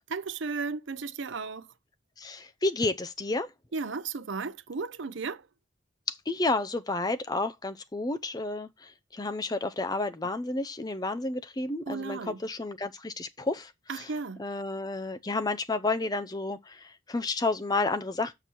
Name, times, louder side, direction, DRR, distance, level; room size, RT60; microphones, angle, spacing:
voice 1, 0.1-1.7 3.7-5.4 11.9-12.4 13.9-14.4, right 4 dB, 75° right, 0.6 m, -34 dB
voice 2, 2.2-3.5 6.1-14.1 14.4-18.3, left 2 dB, 20° left, 0.5 m, -31 dB
6.9 x 5.8 x 4.5 m
head